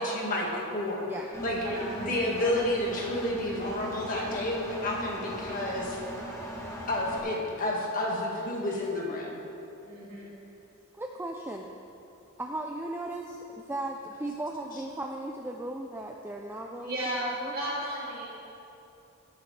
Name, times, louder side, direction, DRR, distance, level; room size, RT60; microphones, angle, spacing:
voice 1, 0.0-1.1 1.4-1.6 2.0-6.0 6.9-9.3, left 1 dB, 40° left, -3 dB, 1.8 m, -30 dB
Engine, 1.3-7.2, equal, 15° left, 1.4 m, -38 dB
voice 2, 1.6-1.9 9.8-10.3 16.7-18.3, right 1 dB, 40° right, -7 dB, 2.6 m, -34 dB
voice 3, 11.0-11.7 12.4-17.5, right 1 dB, 10° right, 1 dB, 0.4 m, -37 dB
17.0 x 8.9 x 3.3 m, 2.9 s
head